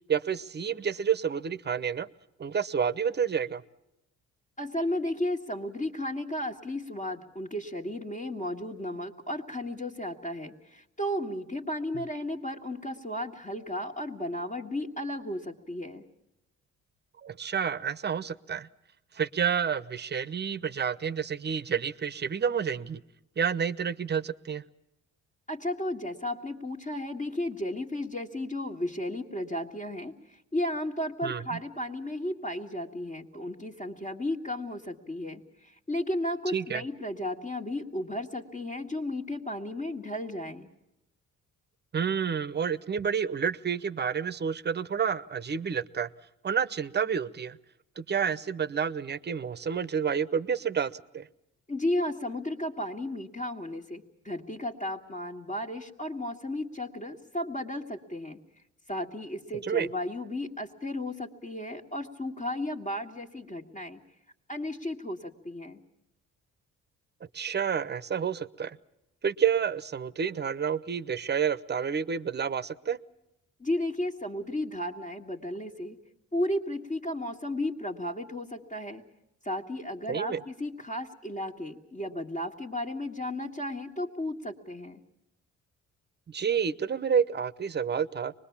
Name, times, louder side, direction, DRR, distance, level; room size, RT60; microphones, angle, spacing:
voice 1, 0.1-2.1 2.4-3.6 17.2-18.7 19.1-23.0 23.4-24.6 31.2-31.6 36.5-36.8 41.9-46.1 46.4-47.6 48.0-51.3 59.6-59.9 67.3-68.8 69.2-73.0 80.1-80.4 86.3-88.3, right 7 dB, 35° right, 16 dB, 0.9 m, -29 dB
voice 2, 4.6-16.0 25.5-40.7 51.7-58.4 58.9-64.0 64.5-65.8 73.6-76.0 76.3-79.1 79.4-85.0, left 1 dB, 25° left, -3 dB, 1.8 m, -34 dB
24.5 x 21.0 x 7.2 m, 0.86 s
cardioid pair, 90°, 30 cm